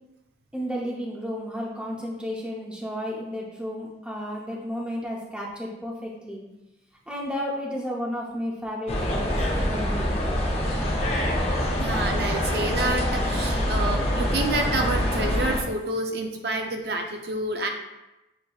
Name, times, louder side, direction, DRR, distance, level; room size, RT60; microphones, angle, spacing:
voice 1, 0.5-6.4 7.1-10.1, equal, 5° right, -3 dB, 0.6 m, -32 dB
sound 1, 8.9-15.6, left 1 dB, 35° left, 0.6 m, -25 dB
voice 2, 11.8-17.7, right 2 dB, 60° right, 3 dB, 0.5 m, -28 dB
7.7 x 2.8 x 2.3 m, 0.97 s
head